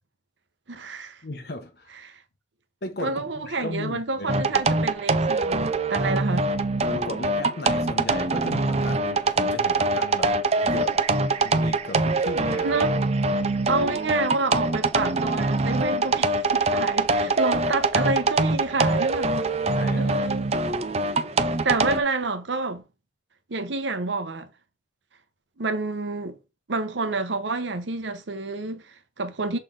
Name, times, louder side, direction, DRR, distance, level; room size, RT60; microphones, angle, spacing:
voice 1, 0.7-1.2 2.0-2.2 3.0-6.5 12.6-12.9 13.7-19.3 20.0-20.5 21.6-22.8 23.5-24.5 25.6-26.4 26.7-29.6, right 3 dB, 80° right, 0.9 m, -28 dB
voice 2, 1.2-1.9 2.8-4.6 6.9-10.3 10.6-11.0 11.4-12.8 19.7-20.1, left 1 dB, 60° left, 1.0 m, -35 dB
sound 1, 4.3-22.0, right 2 dB, 35° right, 0.5 m, -24 dB
6.6 x 4.0 x 3.7 m
head